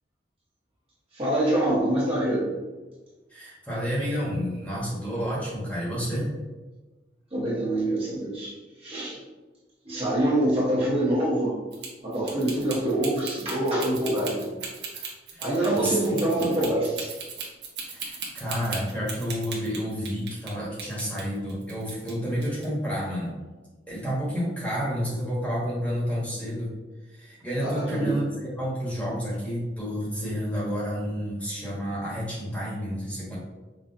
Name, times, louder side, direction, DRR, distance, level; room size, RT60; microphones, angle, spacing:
voice 1, 1.1-2.5 7.3-9.2 9.8-11.5 12.0-14.5 15.4-17.1 27.6-28.2, right 1 dB, 35° right, -7 dB, 1.1 m, -25 dB
voice 2, 3.3-6.3 15.3-16.0 16.4-16.5 17.9-23.4 23.9-26.7 27.1-33.4, equal, 10° left, -7 dB, 1.1 m, -30 dB
sound 1, 11.7-20.5 20.8-22.1 22.4-22.6, right 5 dB, 65° right, 0.9 m, -37 dB
5.5 x 2.3 x 2.6 m, 1.2 s
head